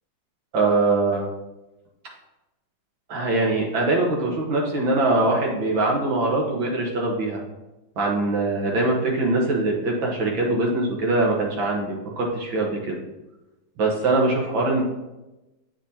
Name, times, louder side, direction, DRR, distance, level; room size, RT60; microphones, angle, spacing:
voice 1, 0.5-1.3 3.1-7.4 8.0-13.0 13.8-14.8, right 2 dB, 65° right, -1 dB, 2.2 m, -22 dB
8.4 x 6.1 x 2.9 m, 1.0 s
omnidirectional pair, 2.3 m